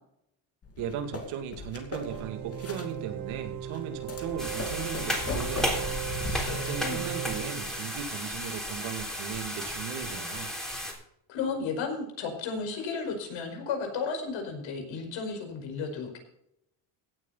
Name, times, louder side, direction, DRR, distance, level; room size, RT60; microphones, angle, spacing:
sound 1, 0.6-7.2, left 3 dB, 30° left, 2.5 m, -38 dB
voice 1, 0.8-6.0 6.5-10.5, right 8 dB, 85° right, 6 dB, 2.6 m, -37 dB
sound 2, 1.9-8.0, right 12 dB, 45° right, 0.9 m, -38 dB
sound 3, 4.4-10.9, equal, ahead, 3.6 m, -34 dB
voice 2, 6.3-7.0 11.3-16.2, left 5 dB, 70° left, 3 dB, 5.1 m, -34 dB
17.0 x 8.9 x 4.1 m, 0.74 s
cardioid pair, 135°, 47 cm